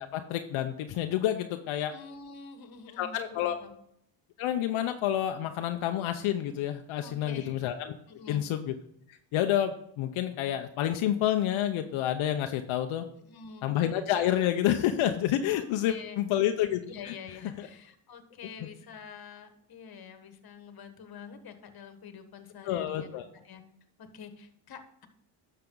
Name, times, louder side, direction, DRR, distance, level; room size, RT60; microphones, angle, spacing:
voice 1, 0.0-1.9 3.0-3.6 4.4-7.9 8.3-8.7 9.1-13.1 13.6-16.8 17.1-17.2 17.6-17.7 22.6-23.2, left 11 dB, 80° left, 6 dB, 0.8 m, -29 dB
voice 2, 1.9-3.7 7.0-7.6 8.1-8.4 13.3-13.7 15.5-16.2 16.8-23.1 23.4-23.6 24.0-25.1, left 6 dB, 50° left, 8 dB, 1.5 m, -46 dB
10.5 x 6.7 x 3.8 m, 0.72 s
cardioid pair, 95°, 48 cm